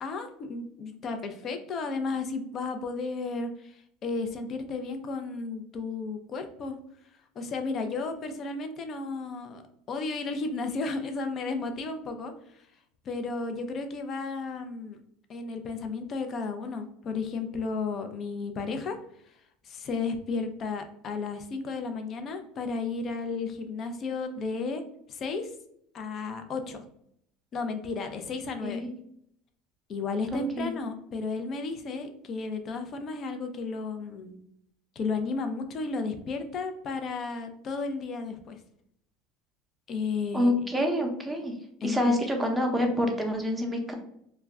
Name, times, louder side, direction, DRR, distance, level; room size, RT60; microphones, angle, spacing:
voice 1, 0.0-6.8 7.4-9.6 9.9-12.6 13.1-15.0 15.3-19.0 19.6-24.8 25.1-25.5 25.9-26.8 27.5-28.8 29.9-34.4 35.0-38.6 39.9-40.5 41.8-42.2, left 4 dB, 40° left, 7 dB, 0.4 m, -33 dB
voice 2, 28.6-28.9 30.3-30.8 40.3-41.5 41.8-43.9, left 1 dB, 5° right, 2 dB, 0.6 m, -27 dB
2.2 x 2.1 x 3.5 m, 0.71 s
supercardioid pair, 105°, 0 cm